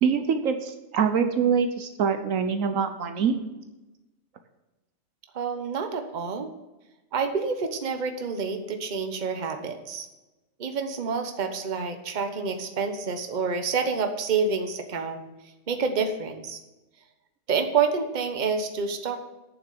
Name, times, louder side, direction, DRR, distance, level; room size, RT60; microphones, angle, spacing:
voice 1, 0.0-3.4, right 6 dB, 70° right, 7 dB, 1.2 m, -24 dB
voice 2, 5.3-6.5 7.1-10.1 10.6-15.2 15.7-16.6 17.5-19.2, right 5 dB, 35° right, 6 dB, 1.1 m, -28 dB
9.0 x 7.2 x 6.9 m, 1.1 s
omnidirectional pair, 1.5 m